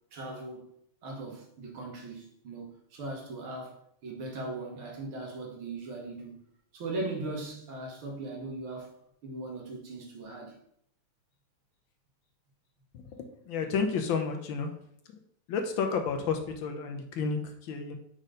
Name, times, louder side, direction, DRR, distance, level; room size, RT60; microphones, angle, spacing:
voice 1, 0.1-0.7 1.0-6.4 6.7-8.9 9.2-10.6, right 2 dB, 70° right, 2.2 m, -39 dB
voice 2, 12.9-14.7 15.5-18.0, left 5 dB, 70° left, 1.4 m, -31 dB
5.2 x 4.1 x 5.0 m
omnidirectional pair, 2.4 m